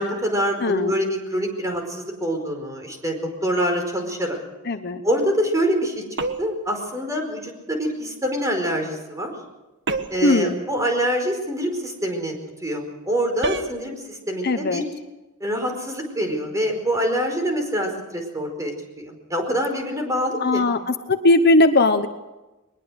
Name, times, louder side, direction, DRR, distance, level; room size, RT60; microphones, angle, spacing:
voice 1, 0.0-4.4 5.0-6.0 6.4-9.3 10.1-12.3 12.6-14.8 15.4-20.6, equal, 15° right, 3 dB, 4.8 m, -25 dB
voice 2, 0.6-0.9 4.7-5.0 10.2-10.6 14.4-14.8 20.4-22.1, left 2 dB, 50° left, 9 dB, 1.0 m, -19 dB
sound 1, 6.2-6.7 9.9-10.3 13.4-13.8, right 3 dB, 55° right, 1.5 m, -27 dB
21.5 x 21.0 x 6.5 m, 1.1 s
head